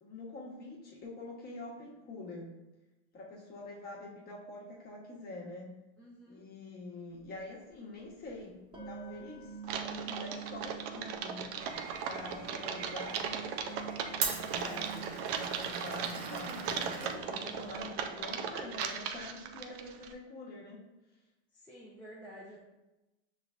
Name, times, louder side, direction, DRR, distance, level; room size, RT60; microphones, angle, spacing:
voice 1, 0.0-2.5 3.1-5.7 6.3-11.5 12.0-13.6 14.4-20.8, left 2 dB, 25° left, -3 dB, 1.2 m, -46 dB
voice 2, 6.0-6.4 14.4-14.9 21.5-22.6, equal, 5° left, -6 dB, 0.6 m, -49 dB
sound 1, 7.2-7.3 8.7-16.1 16.4-20.1, right 7 dB, 15° right, 1.2 m, -49 dB
Typing, 9.6-20.1, right 7 dB, 45° right, 0.5 m, -38 dB
Glass, 11.6-17.9, right 5 dB, 60° right, 0.9 m, -41 dB
5.8 x 3.3 x 2.5 m, 1.0 s
supercardioid pair, 125°, 34 cm